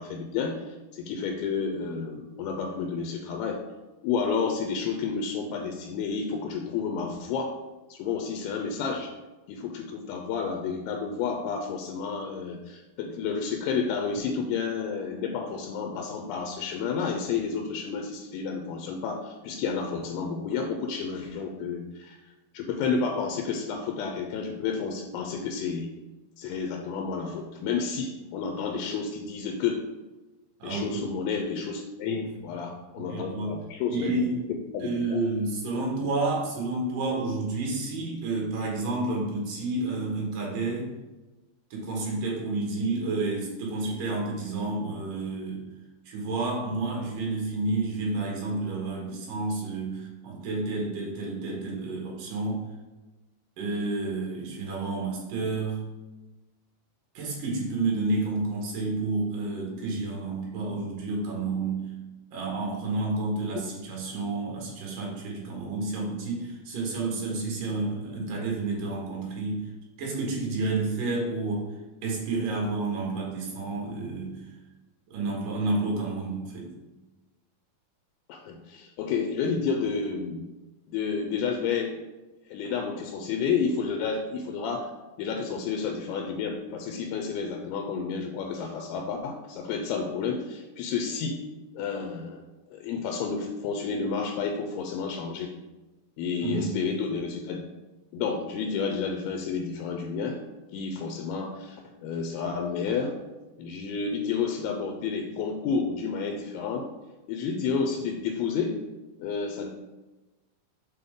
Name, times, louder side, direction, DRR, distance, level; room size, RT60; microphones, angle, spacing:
voice 1, 0.0-3.6 4.0-7.6 7.9-9.1 9.5-22.2 22.5-25.9 26.4-29.8 30.6-34.1 34.7-35.2 78.3-80.5 80.9-82.0 82.5-84.9 85.2-91.4 91.7-92.4 92.7-95.5 96.2-97.7 98.1-100.4 100.7-103.2 103.6-106.9 107.3-108.8 109.2-109.7, left 5 dB, 85° left, 3 dB, 2.5 m, -30 dB
voice 2, 30.6-31.0 32.0-32.2 33.0-33.6 33.9-34.4 34.8-40.9 41.7-45.6 46.1-52.6 53.6-55.8 57.1-61.8 62.3-69.6 70.0-71.7 72.0-74.3 75.1-76.7 96.4-96.7, right 3 dB, 65° right, -2 dB, 2.8 m, -30 dB
6.9 x 4.0 x 3.6 m, 1.1 s
omnidirectional pair, 4.5 m